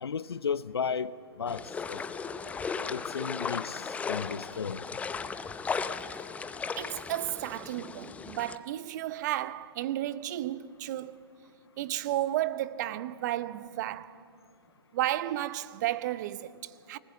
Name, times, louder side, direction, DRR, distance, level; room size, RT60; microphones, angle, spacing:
voice 1, 0.0-2.0 2.9-4.8, left 6 dB, 80° left, 0.6 m, -34 dB
sound 1, 1.5-8.6, left 5 dB, 10° left, 0.7 m, -36 dB
voice 2, 6.5-11.2 11.8-14.2 14.9-17.0, right 14 dB, 45° right, 0.8 m, -33 dB
27.5 x 19.5 x 7.6 m
figure-of-eight pair, 115°, 13 cm